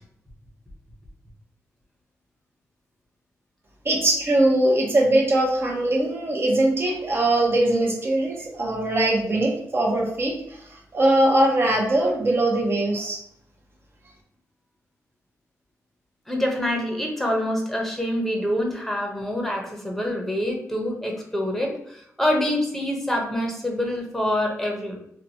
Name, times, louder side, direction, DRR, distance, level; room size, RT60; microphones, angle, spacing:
voice 1, 3.8-10.3 10.9-13.2, right 1 dB, 40° right, -1 dB, 0.9 m, -21 dB
voice 2, 16.3-25.0, left 1 dB, 5° left, 0 dB, 0.8 m, -26 dB
2.9 x 2.2 x 2.8 m, 0.73 s
cardioid pair, 70°, 6 cm